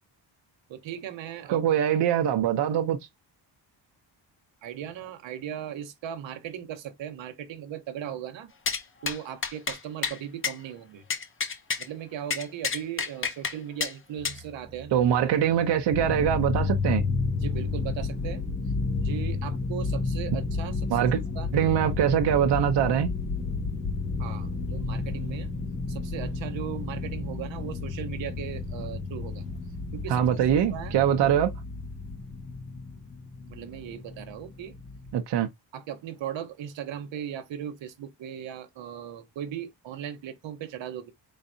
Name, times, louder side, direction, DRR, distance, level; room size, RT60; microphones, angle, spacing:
voice 1, 0.7-1.7 4.6-8.5 9.0-11.0 11.8-15.0 17.4-18.4 19.0-21.5 24.2-25.5 25.9-29.4 29.9-31.3 33.5-34.8 35.7-41.1, right 10 dB, 85° right, 1.1 m, -38 dB
voice 2, 1.5-3.0 14.9-17.0 20.9-21.2 21.5-23.1 30.1-31.5 35.1-35.5, right 9 dB, 65° right, 0.8 m, -23 dB
sound 1, 8.7-8.8 9.1-9.2 9.4-9.8 10.0-10.2 10.4-10.5 11.1-11.8 12.3-13.5 13.8-13.9 14.2-14.4, left 5 dB, 30° left, 0.7 m, -29 dB
sound 2, 14.2-31.1, right 2 dB, 15° right, 0.5 m, -47 dB
sound 3, 15.9-35.1, left 4 dB, 55° left, 2.3 m, -32 dB
4.5 x 4.0 x 2.6 m
wide cardioid pair, 175°, 44 cm